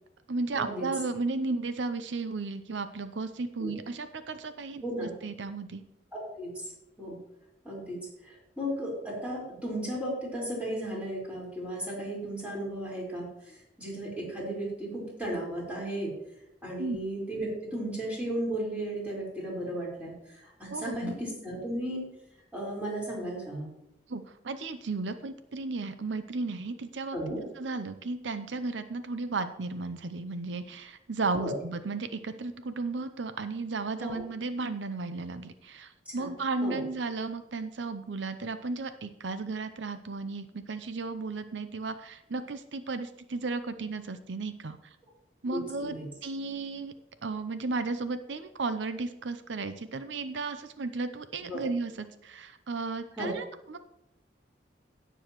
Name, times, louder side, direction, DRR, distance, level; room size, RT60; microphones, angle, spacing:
voice 1, 0.3-5.8 16.8-17.0 20.7-21.1 24.1-27.2 27.6-44.8 45.4-46.9 47.2-53.8, right 3 dB, 80° right, 10 dB, 0.7 m, -34 dB
voice 2, 4.8-5.1 6.1-6.7 7.0-7.2 7.6-16.1 16.6-22.0 22.5-23.7 27.1-27.4 31.4-31.5 34.0-34.1 36.1-36.3 36.6-36.8 45.5-46.0 51.5-51.6 53.2-53.3, right 1 dB, 10° right, -5 dB, 4.5 m, -35 dB
17.5 x 7.0 x 3.1 m, 0.85 s
head